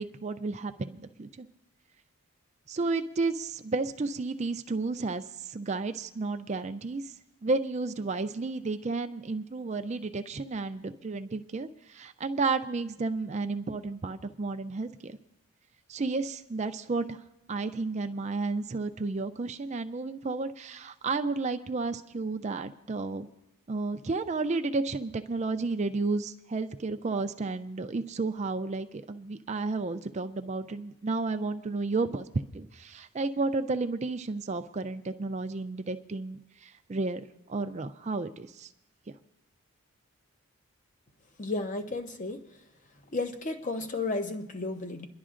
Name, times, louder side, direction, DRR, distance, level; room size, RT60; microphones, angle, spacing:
voice 1, 0.0-1.5 2.7-7.1 7.4-15.2 15.9-17.2 17.5-23.3 23.7-37.2 37.5-38.7, right 3 dB, 30° right, 9 dB, 0.4 m, -32 dB
voice 2, 41.4-42.4 43.1-45.1, left 3 dB, 35° left, 6 dB, 0.7 m, -33 dB
29.0 x 11.0 x 2.5 m, 1.0 s
head